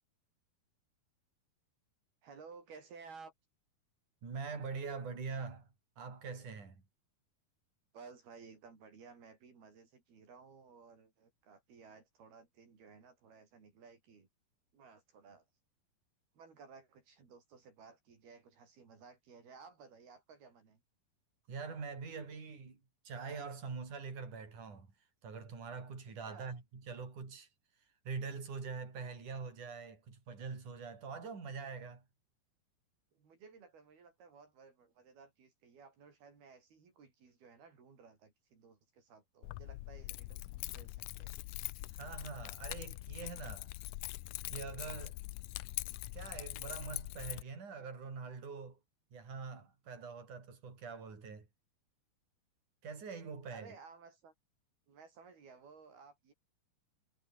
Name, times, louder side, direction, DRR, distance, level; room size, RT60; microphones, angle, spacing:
voice 1, 2.2-3.3 7.9-14.3 14.7-15.5 16.4-20.8 26.1-26.6 33.1-41.4 53.5-54.3 54.9-56.3, right 5 dB, 75° right, 7.2 m, -57 dB
voice 2, 4.2-5.7 6.0-6.8 21.5-22.8 23.1-24.9 25.2-27.5 28.1-32.0 41.9-43.7 44.5-45.2 46.1-48.8 49.1-51.5 52.8-53.7, right 5 dB, 50° right, 7.1 m, -44 dB
Keys jangling, 39.4-47.4, left 19 dB, 85° left, 1.8 m, -43 dB
omnidirectional pair, 4.4 m